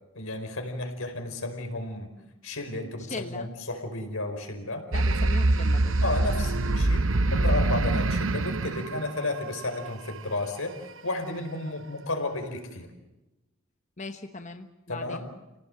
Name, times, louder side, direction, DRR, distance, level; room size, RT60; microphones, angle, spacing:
voice 1, 0.1-2.1 2.4-4.9 6.0-10.8 11.0-12.9 14.9-15.2, left 2 dB, 90° left, 5 dB, 4.9 m, -32 dB
voice 2, 3.1-3.5 4.9-5.9 14.0-15.3, left 3 dB, 35° left, 6 dB, 1.1 m, -39 dB
sound 1, 4.9-9.9, right 2 dB, 75° right, 0.9 m, -24 dB
29.5 x 18.0 x 7.8 m, 1.0 s
head